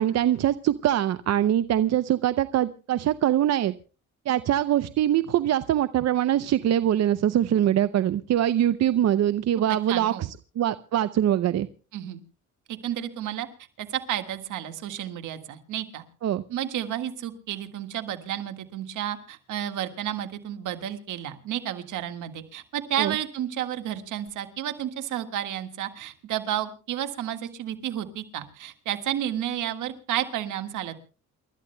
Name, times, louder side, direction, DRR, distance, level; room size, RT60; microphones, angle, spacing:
voice 1, 0.0-3.7 4.3-10.3 10.6-11.7 16.2-16.4 23.0-23.2, right 11 dB, 60° right, 13 dB, 0.6 m, -23 dB
voice 2, 9.7-10.3 11.9-12.2 12.7-13.5 13.8-16.0 16.5-31.0, right 11 dB, 80° right, 7 dB, 1.7 m, -31 dB
28.5 x 13.0 x 2.2 m, 0.36 s
cardioid pair, 90°, 30 cm